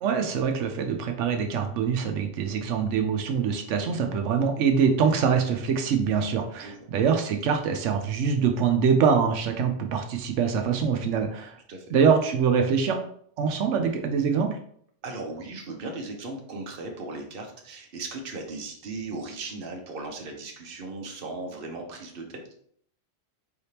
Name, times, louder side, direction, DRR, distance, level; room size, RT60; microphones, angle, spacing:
voice 1, 0.0-11.6 11.9-13.0 13.4-14.6, right 6 dB, 90° right, 4 dB, 0.9 m, -24 dB
voice 2, 15.0-22.4, right 3 dB, 55° right, 2 dB, 1.0 m, -37 dB
4.7 x 3.3 x 2.8 m, 0.62 s
omnidirectional pair, 1.2 m